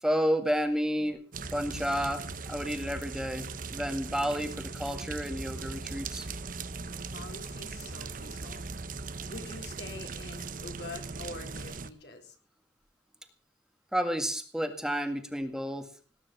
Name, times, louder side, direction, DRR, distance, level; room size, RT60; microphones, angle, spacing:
voice 1, 0.0-1.2 1.5-6.3 13.9-15.9, equal, 5° right, 6 dB, 1.9 m, -31 dB
sound 1, 1.3-11.9, right 4 dB, 50° right, 1.1 m, -39 dB
voice 2, 7.1-8.8 9.3-12.3, left 2 dB, 70° left, 4 dB, 4.3 m, -45 dB
19.5 x 10.0 x 6.9 m, 0.39 s
head